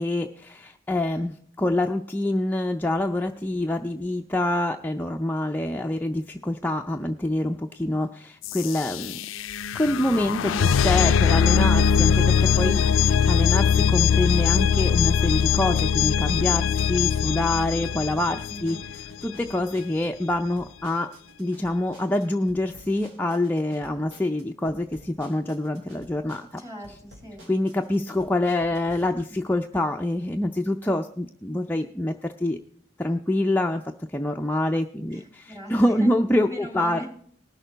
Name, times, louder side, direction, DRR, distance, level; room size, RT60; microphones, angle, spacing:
voice 1, 0.0-9.2 9.7-21.1 21.4-26.6 27.5-32.6 33.0-33.8 34.1-37.1, left 1 dB, 10° left, 3 dB, 0.4 m, -26 dB
sound 1, 8.4-19.3, left 7 dB, 90° left, 0.4 m, -21 dB
sound 2, 11.6-29.0, equal, 85° right, 2.9 m, -50 dB
voice 2, 18.2-18.8 26.6-27.4 35.1-37.1, equal, 15° right, 1 dB, 2.5 m, -39 dB
19.5 x 6.6 x 4.0 m, 0.62 s
head